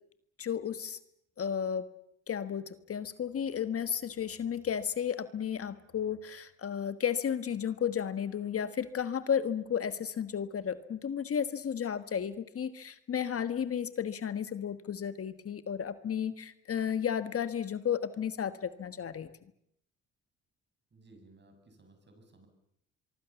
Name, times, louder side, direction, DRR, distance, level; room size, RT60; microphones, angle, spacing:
voice 1, 0.4-1.0 1.4-1.9 2.3-19.3, left 8 dB, 50° left, 12 dB, 1.5 m, -33 dB
voice 2, 20.9-22.5, right 2 dB, 35° right, 6 dB, 7.8 m, -58 dB
24.5 x 24.0 x 7.1 m, 0.74 s
cardioid pair, 90°, 30 cm